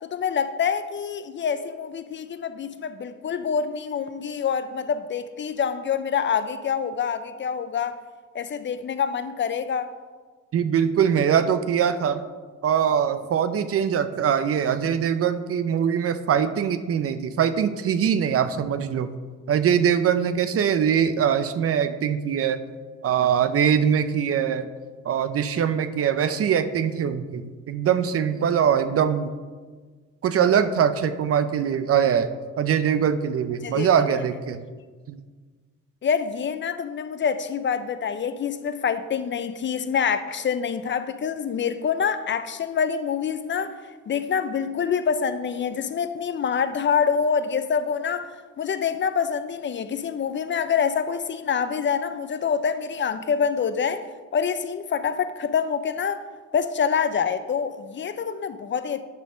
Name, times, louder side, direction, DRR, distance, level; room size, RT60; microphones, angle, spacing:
voice 1, 0.0-8.0 8.3-9.9 33.6-33.9 36.0-54.0 54.3-56.2 56.5-59.0, left 7 dB, 40° left, 0.5 m, -26 dB
voice 2, 10.5-12.2 12.6-19.1 19.5-22.6 23.0-24.7 25.1-29.3 30.2-32.3 32.6-34.6 35.1-35.2, right 8 dB, 50° right, 0.5 m, -22 dB
9.3 x 3.4 x 6.2 m
cardioid pair, 90°, 30 cm